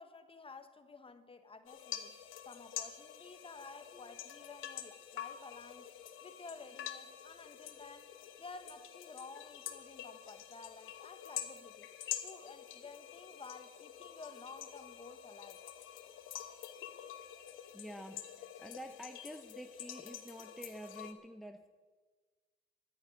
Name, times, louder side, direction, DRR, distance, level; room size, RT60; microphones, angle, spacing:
voice 1, 0.0-5.9 6.2-8.1 8.4-11.9 12.2-15.6, left 4 dB, 25° left, 9 dB, 1.4 m, -52 dB
sound 1, 1.7-21.1, left 10 dB, 85° left, 1.2 m, -47 dB
voice 2, 17.7-21.7, equal, ahead, 6 dB, 0.7 m, -49 dB
11.0 x 9.7 x 9.3 m, 1.4 s
cardioid pair, 90°, 20 cm